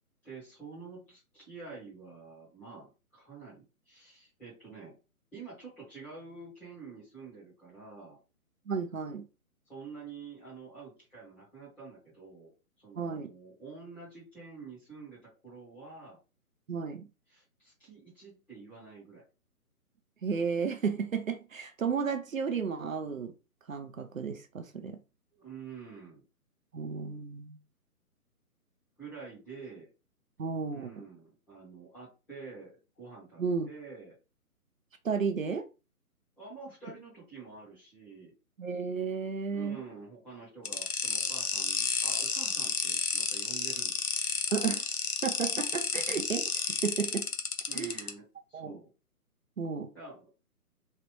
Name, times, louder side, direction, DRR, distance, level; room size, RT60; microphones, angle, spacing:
voice 1, 0.2-5.0 5.3-8.2 9.6-12.5 12.8-16.2 17.3-19.2 25.3-26.2 29.0-29.9 30.7-34.2 36.4-38.3 39.5-44.0 47.7-48.9 49.9-50.3, right 4 dB, 5° left, 0.9 m, -48 dB
voice 2, 8.7-9.3 13.0-13.3 16.7-17.1 20.2-23.3 23.7-25.0 26.7-27.6 30.4-30.9 33.4-33.7 35.0-35.7 38.6-39.8 44.5-44.9 45.2-47.3 47.7-48.0 48.5-48.8 49.6-49.9, right 5 dB, 65° right, 0.6 m, -33 dB
sound 1, 40.7-48.1, left 5 dB, 75° left, 0.7 m, -31 dB
3.1 x 2.4 x 3.1 m
figure-of-eight pair, 140°, 45 cm